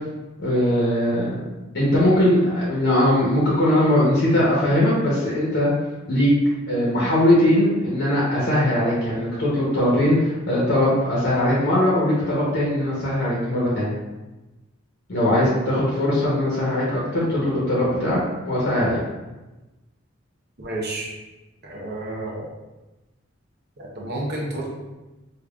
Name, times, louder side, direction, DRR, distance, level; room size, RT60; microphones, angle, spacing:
voice 1, 0.4-1.4 1.7-5.7 6.1-6.3 6.7-13.9 15.1-18.2 18.4-19.0, left 1 dB, 55° left, -7 dB, 1.0 m, -20 dB
voice 2, 20.6-21.1 21.6-22.5 23.8-24.7, right 1 dB, 50° right, -3 dB, 0.9 m, -30 dB
5.0 x 2.5 x 2.4 m, 1.1 s
head